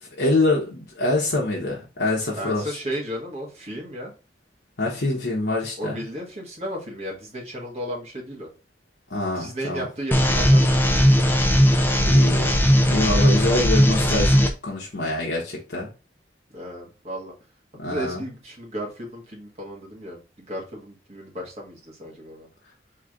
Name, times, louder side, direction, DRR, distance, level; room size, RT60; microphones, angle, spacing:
voice 1, 0.0-2.7 4.8-6.0 9.1-9.9 12.0-12.6 12.8-14.4 14.6-15.9 17.8-18.2, left 2 dB, 70° left, 1.1 m, -25 dB
voice 2, 2.4-4.1 5.8-8.5 9.3-11.0 16.5-17.3 17.8-22.5, equal, 40° right, 1.7 m, -34 dB
sound 1, 10.1-14.5, equal, 10° left, 0.6 m, -18 dB
3.7 x 3.3 x 3.7 m
head